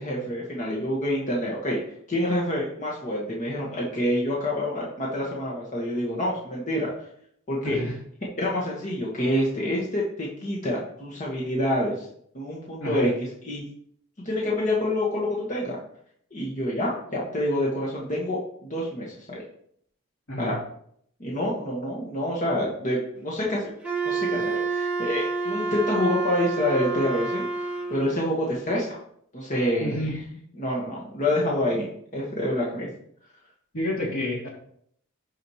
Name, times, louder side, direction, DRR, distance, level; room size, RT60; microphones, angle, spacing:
voice 1, 0.0-1.8 2.1-6.9 7.5-7.8 8.4-12.1 12.3-13.6 14.2-15.8 16.3-19.4 20.4-20.5 21.2-23.6 24.0-29.0 29.3-30.0 30.6-31.9 32.1-32.9, left 1 dB, 35° left, -4 dB, 1.5 m, -27 dB
Wind instrument woodwind instrument, 23.8-28.1, right 4 dB, 5° right, 1.7 m, -28 dB
voice 2, 29.8-30.2 33.7-34.5, left 1 dB, 70° left, -2 dB, 2.7 m, -29 dB
11.0 x 5.0 x 3.1 m, 0.66 s
head